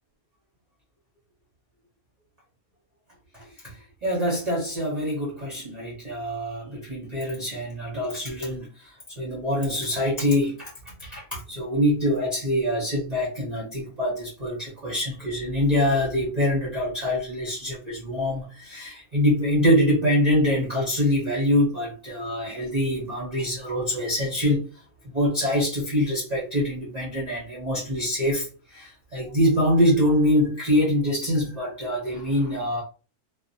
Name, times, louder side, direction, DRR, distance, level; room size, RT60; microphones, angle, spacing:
voice 1, 3.3-3.7 4.0-8.7 9.2-24.7 25.1-28.5 28.7-32.8, equal, 40° right, 0.5 m, -24 dB
2.6 x 2.0 x 2.6 m
omnidirectional pair, 1.6 m